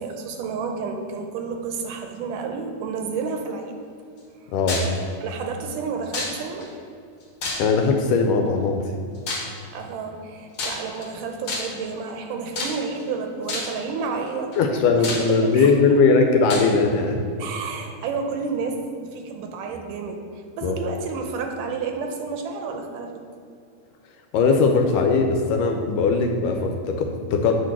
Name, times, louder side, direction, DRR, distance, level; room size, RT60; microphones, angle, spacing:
voice 1, 0.0-3.7 4.4-4.5 5.2-6.7 9.7-14.5 15.2-16.2 17.4-23.2, right 5 dB, 80° right, 4 dB, 2.1 m, -31 dB
voice 2, 4.5-4.8 7.6-8.9 14.6-17.2 20.6-20.8 24.3-27.5, left 4 dB, 80° left, 4 dB, 2.0 m, -19 dB
sound 1, 4.7-5.0 6.1-6.7 7.4-7.9 9.3-9.6 10.5-11.1 11.5-11.9 12.6-13.0 13.5-13.8 14.5-14.6 15.0-15.7 16.5-16.7, left 2 dB, 60° left, 1.4 m, -29 dB
8.4 x 4.9 x 6.0 m, 2.4 s
omnidirectional pair, 4.1 m